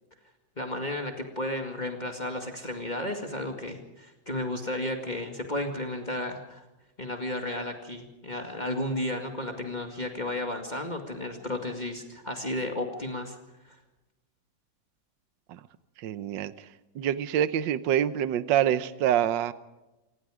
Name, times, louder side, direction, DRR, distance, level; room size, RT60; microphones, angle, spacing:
voice 1, 0.6-6.7 7.0-13.4, left 1 dB, 25° left, 4 dB, 2.1 m, -33 dB
voice 2, 16.0-16.5 16.9-19.5, right 10 dB, 75° right, 14 dB, 1.5 m, -26 dB
27.0 x 20.0 x 5.0 m, 1.0 s
omnidirectional pair, 2.1 m